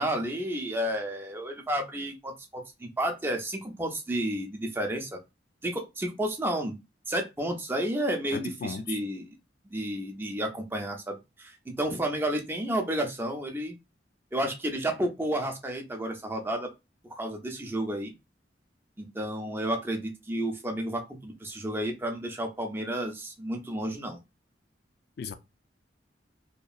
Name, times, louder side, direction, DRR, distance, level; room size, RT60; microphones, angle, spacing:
voice 1, 0.0-5.2 5.6-6.8 7.1-9.3 9.6-13.7 14.3-16.7 17.1-18.1 19.0-24.2, right 1 dB, 10° right, 0.5 m, -31 dB
voice 2, 8.3-8.8 25.2-25.3, left 5 dB, 60° left, 0.3 m, -36 dB
2.8 x 2.4 x 2.3 m
head